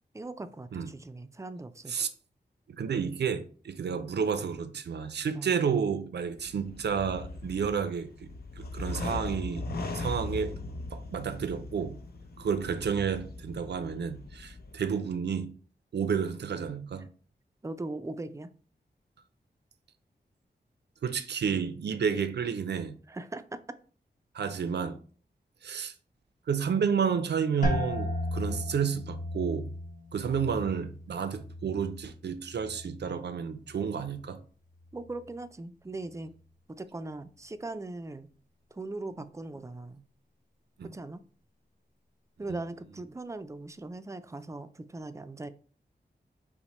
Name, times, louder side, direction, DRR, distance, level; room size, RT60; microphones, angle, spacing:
voice 1, 0.1-1.9 5.3-5.6 17.6-18.5 23.1-23.6 34.9-36.3 36.7-38.3 38.7-40.0 40.8-41.2 42.4-45.5, right 2 dB, 15° right, 0.3 m, -40 dB
voice 2, 2.8-8.3 8.6-9.7 9.9-10.5 10.9-12.0 12.4-15.6 15.9-17.1 21.0-22.9 24.3-25.0 25.6-25.9 26.5-29.7 30.1-34.4 40.8-40.9 42.5-42.6, right 6 dB, 80° right, 0.5 m, -31 dB
sound 1, 6.4-14.9, left 2 dB, 65° left, 0.6 m, -39 dB
sound 2, 27.6-33.3 33.6-34.3 34.8-35.2, left 1 dB, 45° left, 1.2 m, -36 dB
5.8 x 2.1 x 4.2 m
wide cardioid pair, 100°, 17 cm